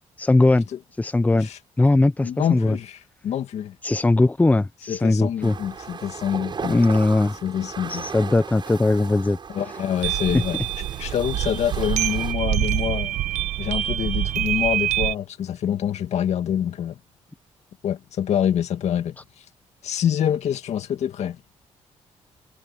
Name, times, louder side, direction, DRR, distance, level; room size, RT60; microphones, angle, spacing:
voice 1, 0.2-0.7 1.0-1.5 1.8-2.8 3.8-5.6 6.7-7.4 7.9-9.4 10.3-10.4, left 2 dB, 15° left, 0.9 m, -19 dB
voice 2, 2.2-3.8 4.9-6.8 7.4-8.1 9.5-13.2 13.6-17.0 17.8-19.2 19.8-21.4, left 9 dB, 70° left, 2.3 m, -26 dB
sound 1, 5.4-12.3, right 6 dB, 40° right, 7.5 m, -37 dB
sound 2, 10.0-15.2, right 13 dB, 85° right, 1.4 m, -25 dB
cardioid pair, 110°, 12 cm